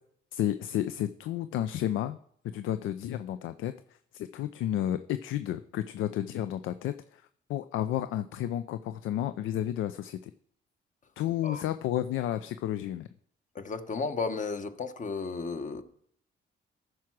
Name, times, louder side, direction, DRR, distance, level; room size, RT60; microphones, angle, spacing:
voice 1, 0.3-2.2 2.4-3.7 4.1-7.2 7.5-10.3 11.2-13.1, left 12 dB, 85° left, 0.5 m, -31 dB
voice 2, 13.5-15.8, left 4 dB, 40° left, 1.1 m, -33 dB
14.0 x 4.8 x 6.1 m
cardioid pair, 90°, 20 cm